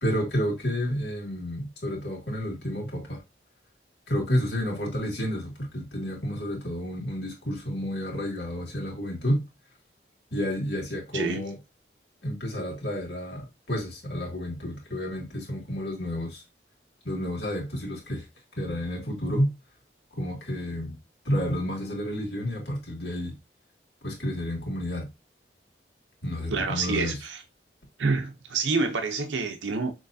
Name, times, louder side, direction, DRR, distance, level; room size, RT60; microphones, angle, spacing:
voice 1, 0.0-3.2 4.1-9.4 10.3-11.6 12.2-16.4 17.0-18.3 18.6-19.5 20.2-21.0 21.2-23.4 24.0-25.1 26.2-27.2, equal, 70° left, 2.2 m, -30 dB
voice 2, 26.5-27.4 28.0-29.9, right 4 dB, 85° right, 0.7 m, -27 dB
6.4 x 3.1 x 2.6 m
head